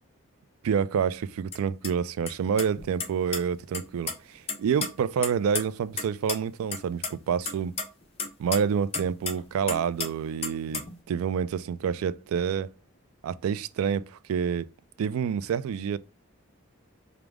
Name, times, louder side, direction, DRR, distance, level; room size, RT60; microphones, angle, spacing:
voice 1, 0.6-7.8 8.4-10.8 11.1-12.7 13.2-14.7 15.0-16.0, right 7 dB, 80° right, 0.3 m, -28 dB
sound 1, 1.5-1.6 1.8-1.9 2.3-2.4 2.6-3.4 3.7-4.1 4.5-6.0 6.3-6.4 6.7-7.1 7.5-9.4 9.7-10.1 10.4-10.9, left 4 dB, 25° left, 0.6 m, -32 dB
4.8 x 2.0 x 3.3 m
head